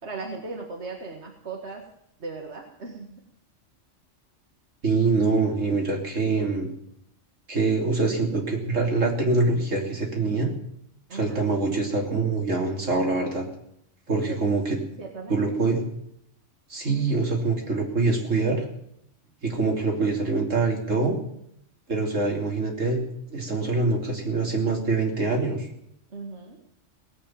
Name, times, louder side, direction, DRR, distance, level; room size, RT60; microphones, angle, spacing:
voice 1, 0.0-1.8 2.2-3.2 11.1-11.5 14.2-14.4 15.0-15.8 26.1-26.6, right 3 dB, 60° right, 1 dB, 2.2 m, -38 dB
voice 2, 4.8-6.7 7.5-10.5 11.1-13.5 14.1-14.8 15.3-15.8 16.7-18.6 19.4-21.2 21.9-23.0 23.3-25.7, right 3 dB, 80° right, 0 dB, 3.7 m, -24 dB
19.0 x 8.7 x 8.8 m, 0.75 s
omnidirectional pair, 1.3 m